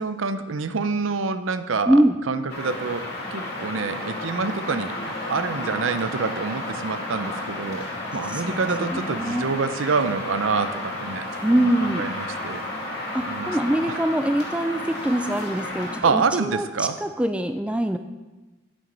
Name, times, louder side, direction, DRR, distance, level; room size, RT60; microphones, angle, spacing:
voice 1, 0.0-3.0 3.3-12.6 13.3-14.0 16.0-17.0, right 4 dB, 80° right, 11 dB, 0.6 m, -27 dB
voice 2, 1.9-2.2 8.3-9.5 11.4-12.0 13.1-16.7 17.0-18.0, right 1 dB, 5° right, 8 dB, 0.3 m, -23 dB
sound 1, 2.5-16.0, left 1 dB, 50° left, 2.6 m, -32 dB
8.7 x 7.8 x 5.4 m, 1.2 s
head